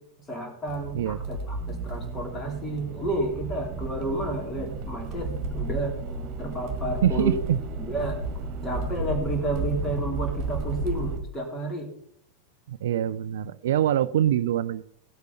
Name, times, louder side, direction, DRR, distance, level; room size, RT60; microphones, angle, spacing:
voice 1, 0.3-1.4 1.7-6.0 6.4-7.4 7.8-8.2 8.6-11.9, right 1 dB, 20° left, 2 dB, 3.5 m, -31 dB
Accelerating revving vroom, 0.7-11.2, right 3 dB, 40° right, 2.0 m, -32 dB
voice 2, 7.0-7.6 12.7-14.8, right 11 dB, 60° right, 15 dB, 0.4 m, -24 dB
17.0 x 8.1 x 4.1 m, 0.67 s
figure-of-eight pair, 90°, 0 cm